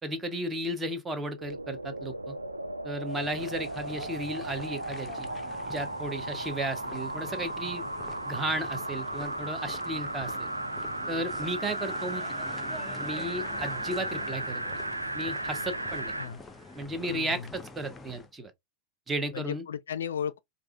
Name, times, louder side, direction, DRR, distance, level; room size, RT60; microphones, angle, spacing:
voice 1, 0.0-2.3 2.8-5.3 5.7-7.9 8.2-10.5 11.1-12.2 13.0-14.6 15.1-16.1 16.7-18.5 19.1-19.6, right 1 dB, 15° right, 0.9 m, -34 dB
sound 1, 1.3-16.3 16.8-16.9, right 1 dB, 85° right, 0.4 m, -35 dB
sound 2, 3.1-18.3, left 3 dB, 15° left, 0.6 m, -46 dB
voice 2, 17.1-17.5 19.3-20.4, left 8 dB, 65° left, 0.3 m, -35 dB
4.7 x 2.5 x 2.2 m
figure-of-eight pair, 90°, 0 cm